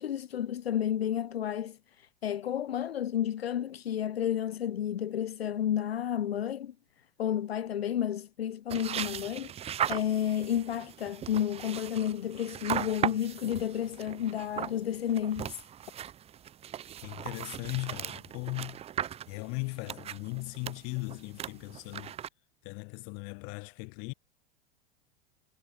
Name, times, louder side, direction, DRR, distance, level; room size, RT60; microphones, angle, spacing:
voice 1, 0.0-6.7 7.2-9.5 9.9-15.6, left 10 dB, 80° left, 0.5 m, -31 dB
sound 1, 8.7-22.3, right 10 dB, 20° right, 0.6 m, -38 dB
voice 2, 17.0-18.8 19.3-22.2 22.6-24.1, left 37 dB, 45° left, 2.1 m, -38 dB
figure-of-eight pair, 85°, 30 cm